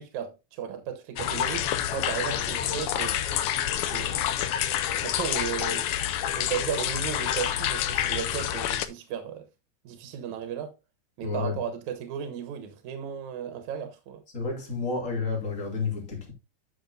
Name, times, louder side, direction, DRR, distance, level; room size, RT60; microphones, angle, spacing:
voice 1, 0.0-3.4 3.7-4.2 5.0-5.9 6.3-9.5 9.8-10.7 11.2-14.2, right 8 dB, 80° right, 2.4 m, -35 dB
sound 1, 1.2-8.9, left 11 dB, 90° left, 1.2 m, -28 dB
voice 2, 11.2-11.6 14.3-16.3, left 4 dB, 30° left, 2.6 m, -30 dB
10.5 x 6.2 x 2.6 m
omnidirectional pair, 3.4 m